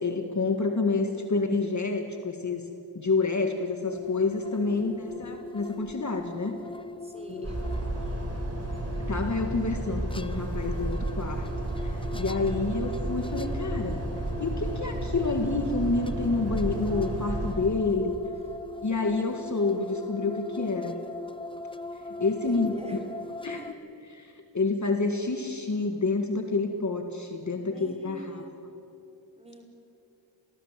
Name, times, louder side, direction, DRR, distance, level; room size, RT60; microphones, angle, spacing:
voice 1, 0.0-2.7 3.0-6.6 7.3-7.5 9.1-11.5 11.8-14.1 14.4-18.2 18.8-21.0 22.2-22.7 23.4-23.7 24.1-24.3 24.5-28.4, left 3 dB, 35° left, 5 dB, 1.9 m, -28 dB
sound 1, 3.8-23.7, left 2 dB, 10° left, 0.8 m, -41 dB
voice 2, 4.6-5.2 7.0-7.6 22.4-23.1 23.4-23.8 27.5-28.6 29.4-29.7, equal, 15° right, 3 dB, 4.3 m, -46 dB
sound 2, 7.4-17.5, right 1 dB, 30° right, 4.8 m, -32 dB
27.0 x 19.5 x 7.5 m, 2.8 s
wide cardioid pair, 90°, 47 cm